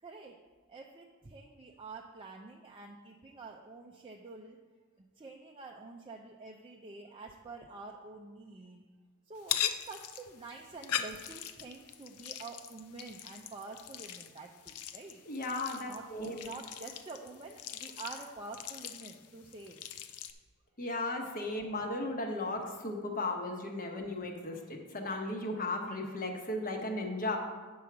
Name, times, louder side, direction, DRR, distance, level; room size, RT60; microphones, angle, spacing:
voice 1, 0.0-0.4 0.7-4.6 5.0-8.8 9.3-15.2 15.9-19.8, right 3 dB, 25° right, 0 dB, 0.5 m, -47 dB
sound 1, 9.4-20.3, left 10 dB, 85° left, 0.5 m, -41 dB
voice 2, 15.3-16.5 20.8-27.4, left 2 dB, 40° left, 2 dB, 1.1 m, -36 dB
8.7 x 4.7 x 6.0 m, 1.4 s
head